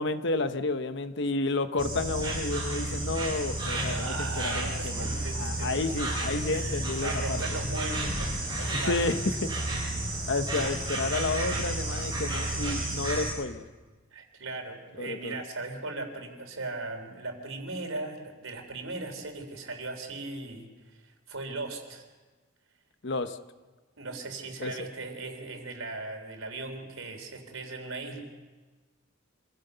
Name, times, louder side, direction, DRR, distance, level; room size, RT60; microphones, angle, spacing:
voice 1, 0.0-7.4 8.7-9.5 10.3-13.6 15.0-15.4 23.0-23.4 24.6-24.7, left 3 dB, 60° left, 10 dB, 1.0 m, -31 dB
Insect, 1.8-13.3, right 1 dB, 20° right, 7.2 m, -32 dB
voice 2, 3.8-5.8 6.5-9.4 10.6-10.7 14.1-22.0 24.0-28.2, right 2 dB, 85° right, 4 dB, 3.6 m, -38 dB
26.0 x 16.0 x 6.8 m, 1.3 s
head